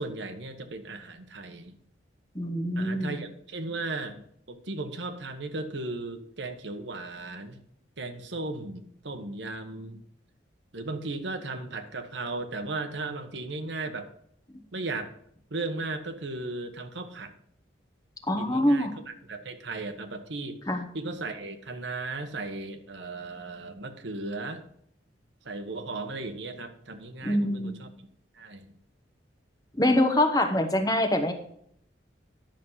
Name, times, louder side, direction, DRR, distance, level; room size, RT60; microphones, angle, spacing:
voice 1, 0.0-1.7 2.7-7.6 8.0-10.0 10.7-14.1 14.7-15.1 15.5-17.3 18.4-18.9 19.3-20.6 20.9-24.6 25.4-27.9 28.3-28.7, right 2 dB, 75° right, 7 dB, 1.2 m, -36 dB
voice 2, 2.3-3.2 18.3-19.0 20.7-20.9 27.2-27.8 29.8-31.3, left 1 dB, 20° left, 6 dB, 1.0 m, -24 dB
10.5 x 6.4 x 5.6 m, 0.68 s
head